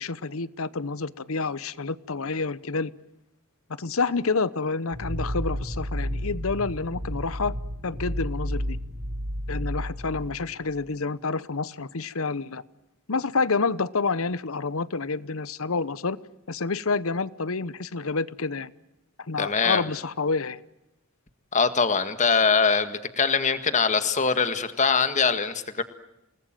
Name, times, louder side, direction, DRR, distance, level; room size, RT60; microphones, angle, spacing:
voice 1, 0.0-2.9 3.8-7.5 7.8-8.8 9.5-12.6 13.1-16.2 16.5-18.7 19.2-20.6, left 4 dB, 70° left, 18 dB, 0.9 m, -28 dB
sound 1, 4.9-10.9, equal, 90° right, 6.7 m, -32 dB
voice 2, 19.4-19.9 21.5-25.8, left 5 dB, 35° left, 11 dB, 1.8 m, -23 dB
28.5 x 20.0 x 9.0 m, 0.92 s
head